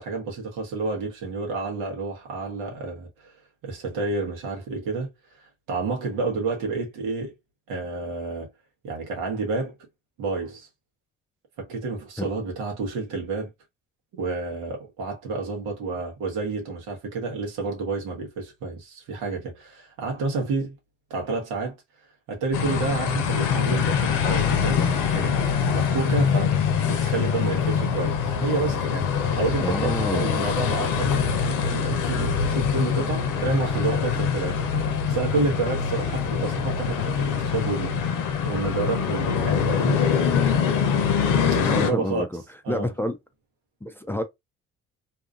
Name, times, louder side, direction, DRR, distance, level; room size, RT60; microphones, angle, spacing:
voice 1, 0.0-3.3 3.6-5.1 5.7-7.3 7.7-8.5 8.8-9.7 10.2-10.7 11.6-13.5 14.1-20.7 21.1-21.7 22.3-24.8 25.1-25.4 25.7-26.5 26.9-29.1 29.4-40.1 41.5-42.2 42.6-42.9, right 3 dB, 80° right, 1.2 m, -29 dB
sound 1, 22.5-41.9, left 7 dB, 75° left, 0.7 m, -24 dB
voice 2, 29.6-30.4 41.7-42.4 42.7-43.2 43.8-44.2, left 1 dB, 5° left, 0.4 m, -28 dB
2.7 x 2.4 x 2.4 m
supercardioid pair, 60°, 31 cm